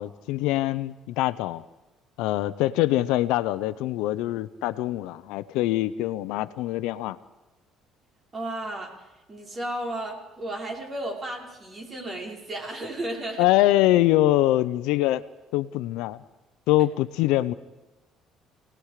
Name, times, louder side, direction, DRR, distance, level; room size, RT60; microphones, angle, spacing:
voice 1, 0.0-1.6 2.2-7.2 13.4-15.2 15.5-16.2 16.7-17.5, left 15 dB, 85° left, 15 dB, 0.8 m, -24 dB
voice 2, 8.3-13.5, right 1 dB, 30° right, 0 dB, 5.5 m, -34 dB
28.0 x 19.0 x 5.0 m, 1.1 s
cardioid pair, 110°, 0 cm